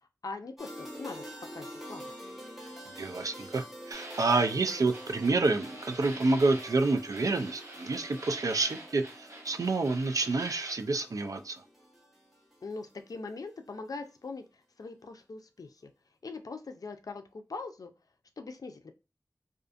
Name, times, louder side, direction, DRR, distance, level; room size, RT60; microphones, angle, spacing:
voice 1, 0.2-1.2 1.5-2.0 12.6-15.9 16.2-17.9 18.4-18.9, left 3 dB, 75° left, 6 dB, 0.4 m, -41 dB
sound 1, 0.6-13.5, equal, 5° right, 0.8 m, -47 dB
voice 2, 2.9-11.6, right 3 dB, 65° right, 7 dB, 0.3 m, -28 dB
sound 2, 3.9-10.7, right 1 dB, 45° right, 0.8 m, -46 dB
2.4 x 2.4 x 2.4 m, 0.30 s
wide cardioid pair, 50°, 6 cm